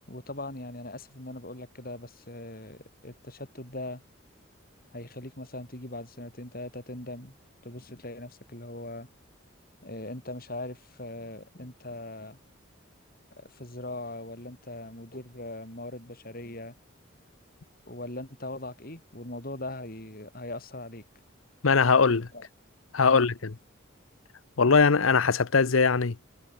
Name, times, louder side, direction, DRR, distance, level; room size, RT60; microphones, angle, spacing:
voice 1, 0.1-4.0 4.9-7.3 7.6-9.1 9.8-12.4 13.4-16.7 17.9-21.0 22.3-22.5 23.0-23.2, left 2 dB, 45° left, 6.3 m, -40 dB
voice 2, 21.6-22.3 22.9-23.3 24.6-26.2, left 5 dB, 85° left, 0.9 m, -21 dB
head